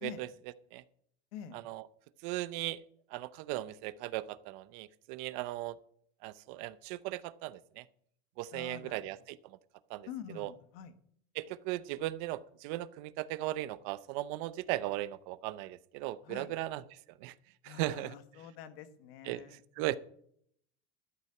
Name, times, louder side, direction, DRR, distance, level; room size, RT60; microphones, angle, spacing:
voice 1, 2.2-2.8 3.1-5.8 6.2-7.8 8.4-9.6 9.9-10.1 10.4-10.5 11.4-16.8 17.2-17.3 17.6-18.1 19.3-19.4 19.8-20.0, right 16 dB, 50° right, 17 dB, 0.6 m, -37 dB
voice 2, 8.5-9.0 10.1-10.9 16.2-16.6 17.6-20.0, left 9 dB, 75° left, 11 dB, 1.5 m, -47 dB
12.5 x 8.2 x 5.8 m, 0.67 s
cardioid pair, 170°, 30 cm